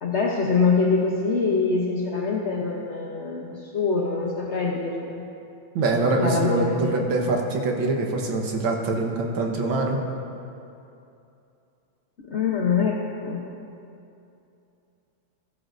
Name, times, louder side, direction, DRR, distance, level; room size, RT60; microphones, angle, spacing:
voice 1, 0.0-5.3 6.2-7.1 12.3-13.4, left 4 dB, 45° left, -2 dB, 0.9 m, -24 dB
voice 2, 5.8-10.0, right 2 dB, 75° right, 1 dB, 2.0 m, -24 dB
20.5 x 12.5 x 2.6 m, 2.7 s
omnidirectional pair, 2.2 m